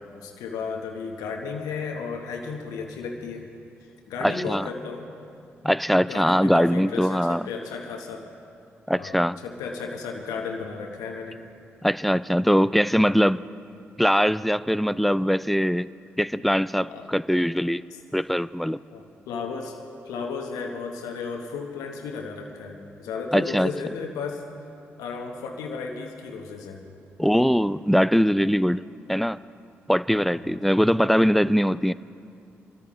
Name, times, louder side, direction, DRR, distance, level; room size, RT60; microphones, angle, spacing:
voice 1, 0.2-3.5 3.8-5.1 6.0-8.3 8.9-11.4 16.9-17.1 17.9-18.0 18.9-19.8 20.0-24.5 25.0-26.8 27.3-27.5 30.3-30.6, left 5 dB, 75° left, 2 dB, 1.2 m, -34 dB
voice 2, 4.2-4.7 5.6-7.5 8.9-9.4 11.8-13.4 14.0-15.9 16.2-17.8 18.1-18.8 23.3-23.7 27.2-28.8 29.1-29.4 29.9-31.9, equal, ahead, 17 dB, 0.4 m, -21 dB
25.0 x 13.0 x 3.2 m, 2.5 s
hypercardioid pair, 40°, 6 cm